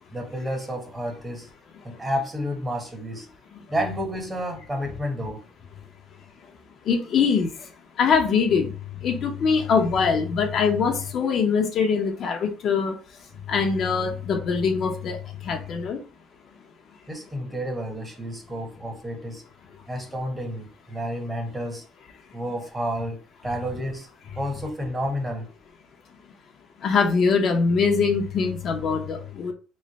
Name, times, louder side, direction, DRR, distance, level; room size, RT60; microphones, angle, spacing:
voice 1, 0.1-1.5 1.8-3.3 3.7-5.4 17.1-19.4 19.9-21.8 22.3-24.1 24.4-25.5, equal, 15° right, 1.0 m, -30 dB
voice 2, 6.9-7.5 8.0-8.7 9.0-12.9 13.5-15.2 15.5-16.0 26.8-29.5, left 5 dB, 50° left, 0.7 m, -22 dB
3.1 x 2.1 x 4.0 m
cardioid pair, 115°, 0 cm